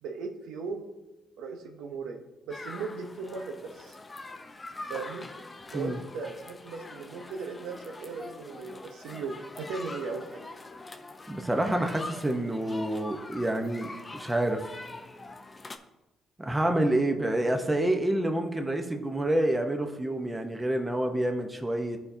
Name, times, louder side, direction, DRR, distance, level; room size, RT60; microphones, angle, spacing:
voice 1, 0.0-0.9 1.4-4.0 4.9-5.3 5.7-10.4, right 4 dB, 90° right, 3 dB, 0.8 m, -37 dB
sound 1, 2.5-15.8, left 2 dB, 25° left, 0.6 m, -44 dB
voice 2, 11.3-14.7 16.4-22.0, right 1 dB, 15° right, 4 dB, 0.8 m, -28 dB
12.5 x 4.3 x 2.7 m, 1.0 s
cardioid pair, 90°, 0 cm